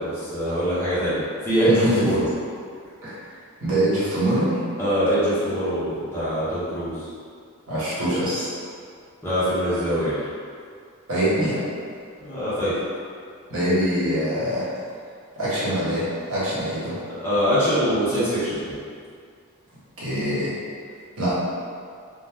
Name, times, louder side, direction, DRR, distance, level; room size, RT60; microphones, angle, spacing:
voice 1, 0.0-2.2 4.8-7.0 9.2-10.2 12.2-12.8 17.2-18.8, equal, 10° left, -12 dB, 0.8 m, -23 dB
voice 2, 1.7-2.0 3.0-3.2 3.6-4.6 7.7-8.5 11.1-11.6 13.5-14.7 15.3-17.0 20.0-20.5 21.2-21.3, right 1 dB, 80° right, -10 dB, 1.2 m, -24 dB
2.9 x 2.1 x 3.5 m, 2.2 s
head